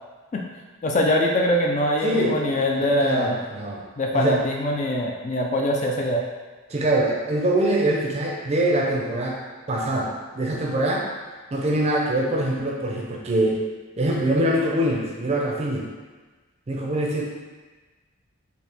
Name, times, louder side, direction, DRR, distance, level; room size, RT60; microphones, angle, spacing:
voice 1, 0.8-3.4 4.0-6.2, left 1 dB, 30° left, 0 dB, 0.3 m, -23 dB
voice 2, 2.0-2.4 3.0-3.8 4.1-4.4 6.7-9.4 9.7-11.0 11.5-13.6 14.0-15.9 16.7-17.2, right 1 dB, 30° right, -1 dB, 0.5 m, -23 dB
4.5 x 2.7 x 3.4 m, 1.3 s
head